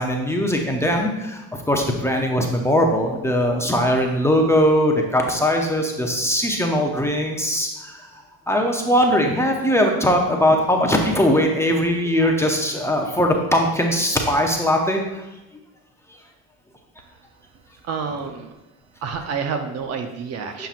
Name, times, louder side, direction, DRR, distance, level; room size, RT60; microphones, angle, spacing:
voice 1, 0.0-15.2 20.6-20.7, equal, 5° left, 1 dB, 0.6 m, -20 dB
voice 2, 17.9-18.5 19.0-20.7, right 5 dB, 45° right, 7 dB, 0.6 m, -28 dB
6.8 x 5.8 x 2.5 m, 1.0 s
supercardioid pair, 110°, 37 cm